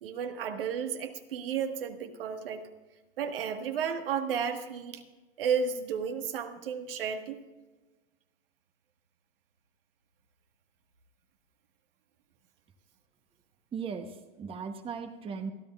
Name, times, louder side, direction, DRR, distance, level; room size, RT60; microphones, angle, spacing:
voice 1, 0.0-2.7 3.2-5.0 5.4-7.4, right 7 dB, 70° right, 6 dB, 1.6 m, -33 dB
voice 2, 13.7-15.5, right 6 dB, 20° right, 7 dB, 1.0 m, -37 dB
27.5 x 10.5 x 2.4 m, 1.2 s
hypercardioid pair, 120°, 29 cm